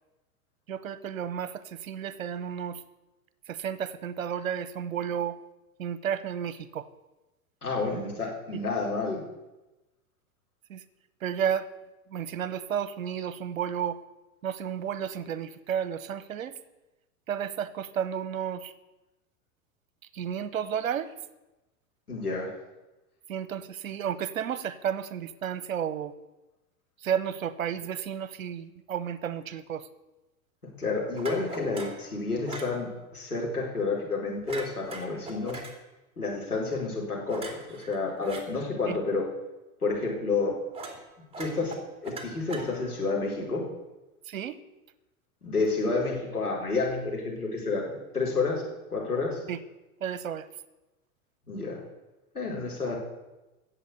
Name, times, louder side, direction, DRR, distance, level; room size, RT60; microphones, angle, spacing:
voice 1, 0.7-2.8 3.5-5.4 5.8-6.9 7.9-8.0 8.5-8.6 10.7-10.8 11.2-11.7 12.1-14.0 14.4-16.6 17.3-18.7 20.1-21.1 23.3-26.1 27.0-29.9 38.9-39.0 44.3-44.6 49.5-49.6 50.0-50.5, right 8 dB, 65° right, 16 dB, 1.1 m, -32 dB
voice 2, 7.6-9.2 22.1-22.5 30.8-35.6 36.2-39.2 39.8-40.5 41.4-41.7 42.0-43.7 45.4-48.6 48.9-49.4 51.5-51.8 52.3-53.0, left 3 dB, 85° left, -3 dB, 4.5 m, -30 dB
sound 1, 31.2-32.0 32.5-32.7 34.5-35.7 37.3-38.4 40.7-41.0 41.3-43.0, right 3 dB, 15° right, 2.6 m, -40 dB
17.0 x 7.4 x 8.3 m, 1.0 s
figure-of-eight pair, 90°, 44 cm